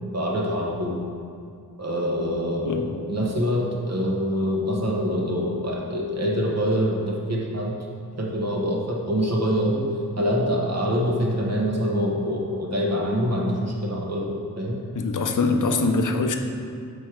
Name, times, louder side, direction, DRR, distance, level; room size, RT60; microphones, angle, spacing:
voice 1, 0.0-1.0 1.8-7.8 8.2-14.8, equal, 45° right, -1 dB, 1.1 m, -25 dB
voice 2, 14.9-16.4, left 3 dB, 55° left, 5 dB, 0.6 m, -23 dB
6.4 x 4.9 x 4.5 m, 2.3 s
wide cardioid pair, 130°, 38 cm